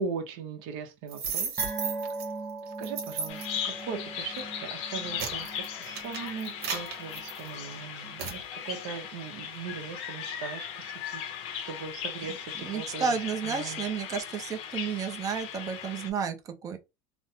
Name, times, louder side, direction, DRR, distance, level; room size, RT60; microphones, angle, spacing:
voice 1, 0.0-1.7 2.6-13.2 13.4-13.8, right 5 dB, 65° right, 0.9 m, -39 dB
sound 1, 1.1-2.3 2.8-3.6 4.2-4.4 4.9-7.7 8.2-8.4, right 6 dB, 85° right, 1.1 m, -34 dB
sound 2, 1.6-8.4 8.7-8.9 9.3-9.4, right 3 dB, 20° left, 0.6 m, -41 dB
Bird vocalization bird call bird song, 3.3-16.1, left 8 dB, 55° left, 0.7 m, -38 dB
voice 2, 12.6-16.8, right 6 dB, 25° right, 0.6 m, -32 dB
3.2 x 2.1 x 2.7 m
supercardioid pair, 140°, 13 cm